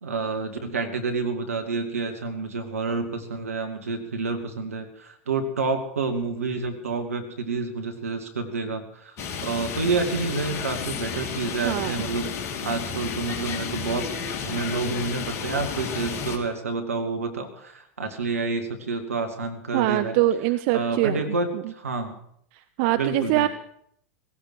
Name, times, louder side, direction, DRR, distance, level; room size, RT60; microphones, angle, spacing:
voice 1, 0.0-12.3 12.6-20.2 20.7-22.2 22.9-23.5, right 4 dB, 80° right, 5 dB, 2.3 m, -29 dB
sound 1, 9.2-16.4, left 6 dB, 40° left, 2.8 m, -32 dB
voice 2, 11.6-12.0 19.7-21.2 22.8-23.5, right 15 dB, 55° right, 12 dB, 0.7 m, -23 dB
17.0 x 16.5 x 4.8 m, 0.69 s
figure-of-eight pair, 90°, 8 cm